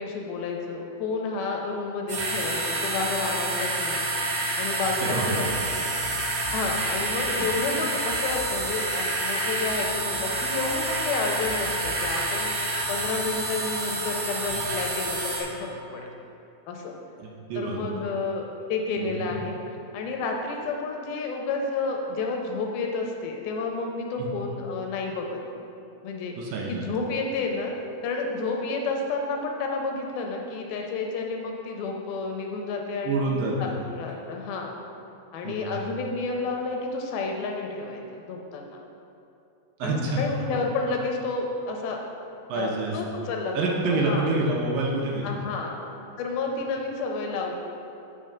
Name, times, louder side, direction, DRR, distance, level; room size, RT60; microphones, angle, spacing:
voice 1, 0.0-4.0 4.6-5.5 5.8-6.0 6.5-12.5 12.9-16.1 16.7-17.0 17.6-19.6 19.9-25.4 26.0-26.4 26.7-27.7 28.0-33.3 33.6-34.8 35.3-38.8 39.8-42.0 42.5-44.3 45.2-45.8 46.2-47.5, left 3 dB, 85° left, 1 dB, 2.5 m, -30 dB
sound 1, 2.1-15.4, right 2 dB, 60° right, 2.0 m, -28 dB
voice 2, 5.0-5.4 7.4-7.5 17.2-18.0 19.0-19.4 24.2-24.3 26.4-26.9 33.0-33.6 35.4-35.7 39.8-40.6 42.5-43.0 43.5-45.3, right 2 dB, 75° right, -2 dB, 2.3 m, -27 dB
7.3 x 5.5 x 5.1 m, 2.8 s
omnidirectional pair, 4.5 m